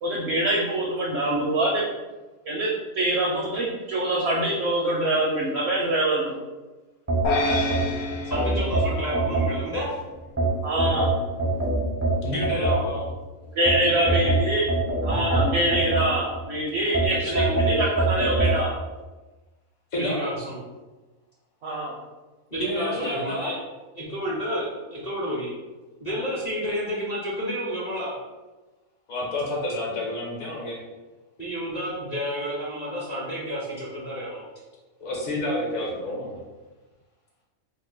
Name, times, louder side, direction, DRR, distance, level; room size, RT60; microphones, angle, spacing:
voice 1, 0.0-1.8 2.5-6.4 10.6-11.1 13.6-14.7 15.0-18.7 21.6-21.9, right 1 dB, 65° right, -3 dB, 0.6 m, -25 dB
sound 1, 7.1-9.9 10.4-13.1 13.7-16.4 16.9-18.6, right 2 dB, 20° right, 0.3 m, -24 dB
sound 2, 7.2-9.7, left 2 dB, 85° left, 1.1 m, -28 dB
voice 2, 8.2-10.0 12.3-13.0 13.8-14.3 17.1-17.8 19.9-20.6 22.5-23.6 23.9-25.5 26.0-28.2 31.4-34.4, equal, 40° left, -6 dB, 0.6 m, -31 dB
voice 3, 12.2-12.8 19.9-20.3 22.6-23.5 29.1-30.8 35.0-36.4, left 1 dB, 60° left, -3 dB, 1.2 m, -29 dB
2.8 x 2.4 x 3.8 m, 1.2 s
omnidirectional pair, 1.5 m